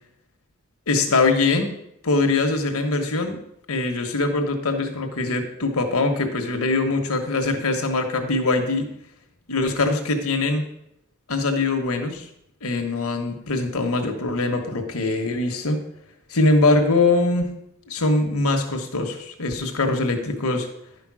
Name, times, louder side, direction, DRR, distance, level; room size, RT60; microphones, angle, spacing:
voice 1, 0.9-1.7 2.0-3.4 3.7-8.9 9.5-10.7 11.3-12.3 12.6-15.8 16.3-17.5 17.9-20.7, left 3 dB, 75° left, 5 dB, 1.3 m, -22 dB
11.0 x 5.3 x 6.2 m, 0.79 s
head